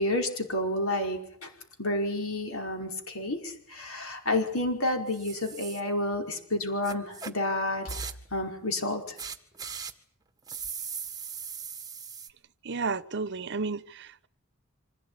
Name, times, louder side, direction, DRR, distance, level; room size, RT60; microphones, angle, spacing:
voice 1, 0.0-1.5 1.8-8.0 8.3-9.1, left 1 dB, 70° left, 5.1 m, -30 dB
sound 1, 5.1-5.8 6.8-7.3 7.8-8.3 9.2-9.9 10.5-12.3, right 6 dB, 20° right, 1.7 m, -39 dB
voice 2, 12.6-14.3, right 4 dB, 55° right, 1.0 m, -32 dB
26.0 x 17.0 x 9.8 m
head